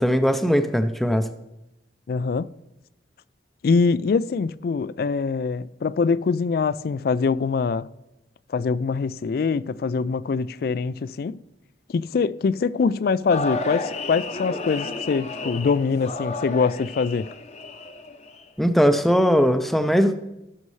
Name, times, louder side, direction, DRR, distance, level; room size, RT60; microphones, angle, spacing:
voice 1, 0.0-1.3 18.6-20.1, equal, ahead, 0.5 m, -19 dB
voice 2, 2.1-2.5 3.6-7.9 8.5-11.4 11.9-17.3, left 5 dB, 55° left, 0.3 m, -23 dB
sound 1, 13.3-18.4, left 2 dB, 35° left, 0.7 m, -32 dB
17.5 x 6.5 x 3.2 m
head